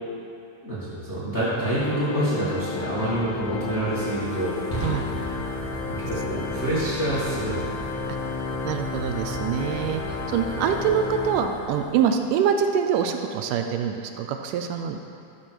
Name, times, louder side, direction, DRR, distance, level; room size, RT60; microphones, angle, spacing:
voice 1, 0.6-4.6 6.0-7.8, right 1 dB, 35° left, -10 dB, 1.1 m, -27 dB
Organ, 1.4-12.1, left 4 dB, 75° left, 1.8 m, -32 dB
Fire, 3.2-12.1, right 1 dB, 20° left, 1.3 m, -37 dB
voice 2, 8.7-15.0, right 7 dB, 80° right, 5 dB, 2.1 m, -25 dB
13.0 x 6.3 x 4.5 m, 2.6 s
omnidirectional pair, 3.8 m